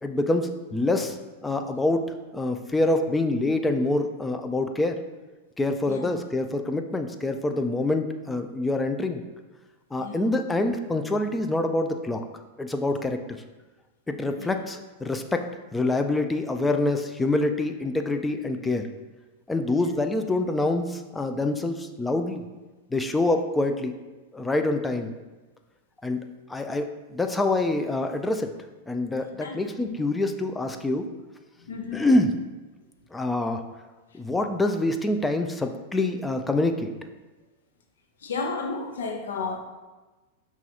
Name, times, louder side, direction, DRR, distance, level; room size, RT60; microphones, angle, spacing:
voice 1, 0.0-1.2 1.4-2.0 2.3-5.0 5.6-9.2 9.9-12.2 12.6-13.2 14.1-18.9 19.5-22.4 22.9-23.9 24.3-25.1 26.0-26.2 26.5-28.5 28.9-31.1 31.9-32.3 33.1-33.6 34.1-36.9, left 2 dB, 10° left, 6 dB, 0.3 m, -26 dB
voice 2, 29.4-30.0 31.7-32.1 38.2-39.6, left 4 dB, 85° left, 4 dB, 0.6 m, -33 dB
5.9 x 2.4 x 2.8 m, 1.2 s
hypercardioid pair, 115°, 0 cm